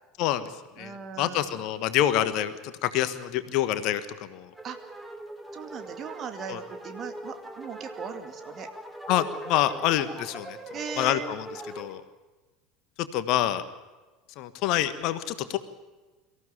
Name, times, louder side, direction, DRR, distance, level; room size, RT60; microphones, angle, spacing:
voice 1, 0.2-0.5 0.8-4.5 6.5-6.6 9.1-10.6 11.0-11.5 11.8-12.0 13.0-13.6 14.4-15.6, left 12 dB, 50° left, 12 dB, 1.4 m, -27 dB
voice 2, 0.8-1.7 4.6-5.1 5.5-8.7 10.7-11.3, right 6 dB, 35° right, 8 dB, 2.4 m, -39 dB
sound 1, 4.5-11.9, right 1 dB, 10° right, 2.8 m, -41 dB
24.5 x 15.0 x 8.9 m, 1.2 s
figure-of-eight pair, 75°, 0 cm